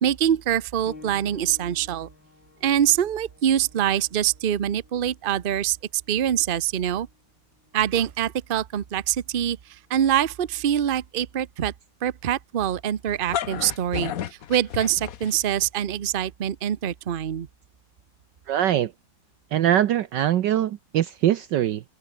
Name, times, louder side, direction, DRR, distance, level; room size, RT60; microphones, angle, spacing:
voice 1, 0.0-2.1 2.6-7.1 7.7-11.7 12.0-17.5, right 10 dB, 90° right, 0.4 m, -24 dB
sound 1, 0.9-11.1 12.0-12.2 12.9-13.0, left 3 dB, 70° left, 5.2 m, -54 dB
sound 2, 13.1-15.7, left 10 dB, 55° left, 1.2 m, -32 dB
voice 2, 18.5-18.9 19.5-21.8, right 11 dB, 70° right, 1.4 m, -22 dB
open air
omnidirectional pair, 2.1 m